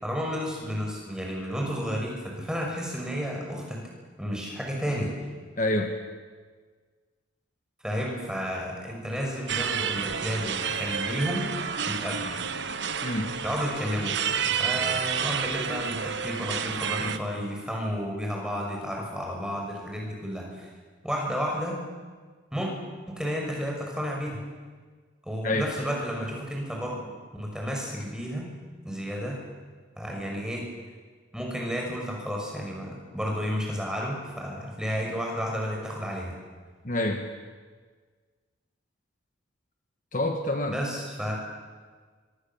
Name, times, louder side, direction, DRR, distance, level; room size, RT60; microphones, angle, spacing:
voice 1, 0.0-3.8 4.2-5.1 7.8-11.5 11.9-12.4 13.4-14.1 14.6-20.7 21.0-21.8 22.5-22.7 23.1-24.4 25.2-27.0 27.3-28.5 28.8-29.4 30.0-30.6 31.3-36.4 40.7-41.4, equal, 5° right, -1 dB, 6.2 m, -32 dB
voice 2, 5.6-5.9 13.0-13.3 25.4-25.7 36.8-37.3 40.1-40.8, left 1 dB, 40° left, 4 dB, 1.7 m, -27 dB
sound 1, 9.5-17.2, right 7 dB, 65° right, 1.3 m, -30 dB
25.5 x 24.0 x 7.3 m, 1.5 s
head